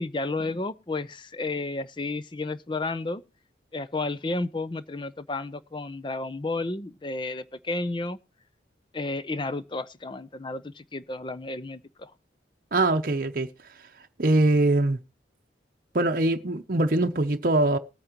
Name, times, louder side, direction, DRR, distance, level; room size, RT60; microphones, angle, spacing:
voice 1, 0.0-3.2 3.7-8.2 8.9-12.1, left 2 dB, 25° left, 0.6 m, -32 dB
voice 2, 12.7-13.5 14.2-15.0 15.9-17.8, right 2 dB, 50° right, 0.8 m, -22 dB
20.0 x 8.7 x 3.0 m
head